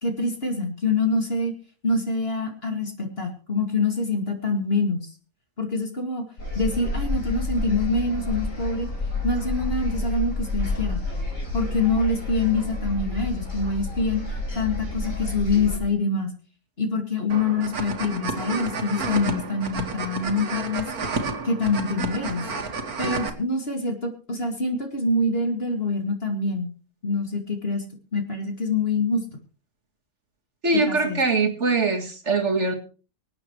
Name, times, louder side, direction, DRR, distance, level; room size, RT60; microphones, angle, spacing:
voice 1, 0.0-1.5 1.8-5.1 5.6-6.2 6.5-8.9 9.2-11.0 11.5-14.2 14.5-16.3 16.8-20.9 21.4-22.5 23.0-26.7 27.0-27.8 28.1-29.2 30.7-31.2, left 3 dB, 40° left, 3 dB, 2.6 m, -25 dB
sound 1, 6.4-15.8, left 2 dB, 60° left, 5.2 m, -29 dB
sound 2, 17.3-23.3, right 4 dB, 80° right, 2.1 m, -31 dB
voice 2, 30.6-32.7, right 3 dB, 50° right, 2 dB, 2.2 m, -22 dB
25.0 x 8.8 x 3.2 m, 0.35 s
omnidirectional pair, 1.6 m